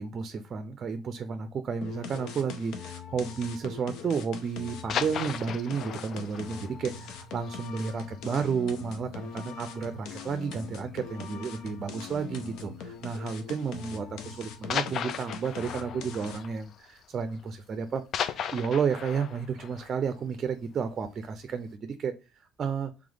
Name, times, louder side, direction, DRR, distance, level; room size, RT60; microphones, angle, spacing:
voice 1, 0.0-22.1 22.6-22.9, right 6 dB, 45° right, 9 dB, 0.5 m, -32 dB
sound 1, 1.8-16.6, left 5 dB, 75° left, 0.8 m, -42 dB
sound 2, 4.7-8.2 8.5-8.6 9.0-9.2 9.5-9.6 10.5-10.9 12.1-12.3 13.2-13.3 14.7-17.5 17.7-20.9 21.3-21.4, left 8 dB, 55° left, 0.3 m, -36 dB
3.4 x 3.2 x 3.8 m, 0.31 s
supercardioid pair, 90°, 0 cm